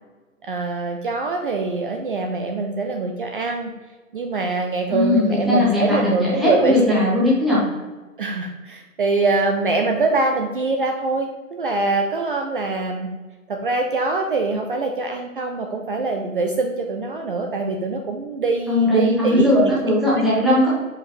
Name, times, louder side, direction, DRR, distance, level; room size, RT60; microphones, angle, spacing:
voice 1, 0.5-3.7 4.1-7.1 8.2-13.1 13.5-19.7, right 3 dB, 40° right, 2 dB, 0.5 m, -23 dB
voice 2, 4.9-7.6 18.7-20.7, left 1 dB, ahead, -9 dB, 0.8 m, -18 dB
5.0 x 4.8 x 4.1 m, 1.3 s
hypercardioid pair, 145°, 42 cm